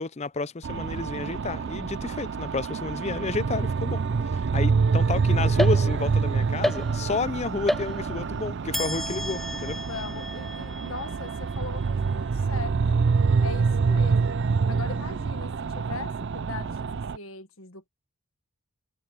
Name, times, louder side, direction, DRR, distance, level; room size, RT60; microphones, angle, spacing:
voice 1, 0.0-9.8, left 3 dB, 30° left, 0.5 m, -31 dB
sound 1, 0.6-17.2, right 5 dB, 55° right, 0.4 m, -26 dB
voice 2, 4.8-5.6 9.9-13.0 13.4-14.4 14.7-17.9, left 4 dB, 65° left, 1.7 m, -40 dB
sound 2, 5.6-6.2 6.6-7.3 7.7-8.3 8.7-12.2, equal, ahead, 0.8 m, -33 dB
head